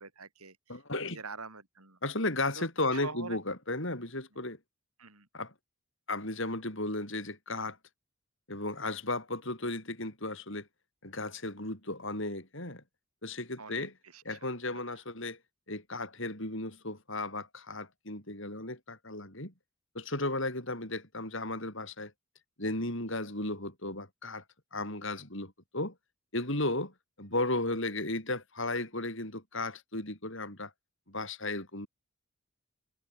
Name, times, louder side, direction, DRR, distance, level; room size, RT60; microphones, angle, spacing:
voice 1, 0.0-0.8 1.1-2.0 2.6-3.4 5.0-5.3 13.6-14.4 14.7-15.0, right 4 dB, 85° right, 7.6 m, -46 dB
voice 2, 0.7-1.2 2.0-4.6 5.3-5.5 6.1-7.8 8.5-10.7 11.0-12.8 13.2-13.9 14.2-15.4 15.7-19.5 19.9-22.1 22.6-24.4 24.7-25.9 26.3-26.9 27.2-30.7 31.1-31.9, left 2 dB, 60° left, 7.7 m, -35 dB
head